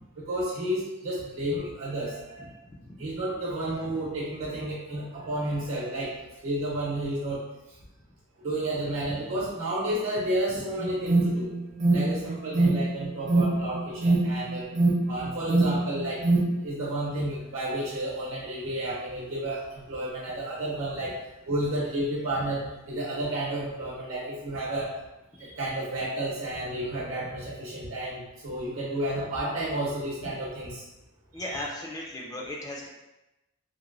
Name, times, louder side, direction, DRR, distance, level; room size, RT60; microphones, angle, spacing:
voice 1, 0.3-2.5 3.0-6.1 6.4-7.4 8.4-11.5 11.9-14.7 15.1-16.2 16.6-21.2 21.5-24.9 25.4-30.8 31.5-31.6, right 1 dB, 70° right, -5 dB, 0.8 m, -31 dB
voice 2, 2.4-3.0 9.1-9.2 31.3-32.9, left 1 dB, 15° left, -2 dB, 0.3 m, -37 dB
Alarm, 10.8-16.7, right 2 dB, 35° right, 0.5 m, -25 dB
2.9 x 2.5 x 2.5 m, 0.98 s
head